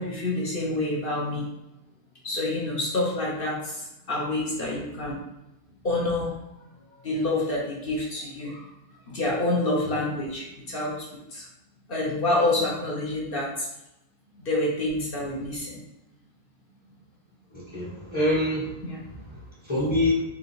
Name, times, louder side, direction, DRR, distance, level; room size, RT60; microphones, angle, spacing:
voice 1, 0.0-1.5 2.2-5.2 5.8-6.3 7.0-8.6 9.1-11.1 11.3-11.4 11.9-13.7 14.4-15.8 18.8-19.0, left 2 dB, 45° left, -3 dB, 0.8 m, -27 dB
voice 2, 17.5-20.2, left 1 dB, 20° left, -8 dB, 1.0 m, -27 dB
3.7 x 2.8 x 4.2 m, 0.90 s
omnidirectional pair, 1.7 m